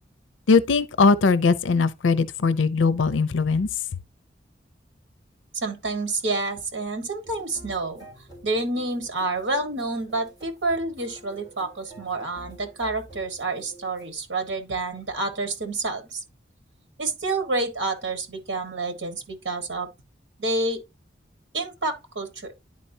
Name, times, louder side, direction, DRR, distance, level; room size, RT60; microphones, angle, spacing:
voice 1, 0.5-3.7, left 4 dB, 90° left, 0.5 m, -20 dB
voice 2, 5.5-8.1 8.4-16.2 17.0-19.9 20.4-20.8 21.5-22.5, right 2 dB, 80° right, 1.5 m, -28 dB
sound 1, 7.2-14.1, right 1 dB, 20° right, 4.1 m, -48 dB
10.5 x 4.4 x 2.7 m
head